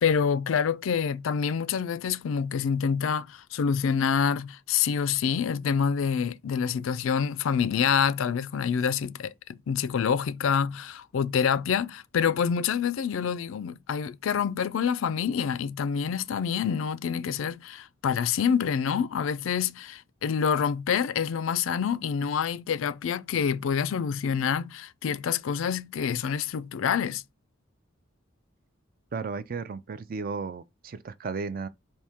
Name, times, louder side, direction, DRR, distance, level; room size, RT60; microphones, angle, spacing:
voice 1, 0.0-27.2, left 7 dB, 80° left, 0.4 m, -27 dB
voice 2, 29.1-31.7, right 4 dB, 45° right, 0.4 m, -34 dB
4.2 x 2.7 x 3.5 m
head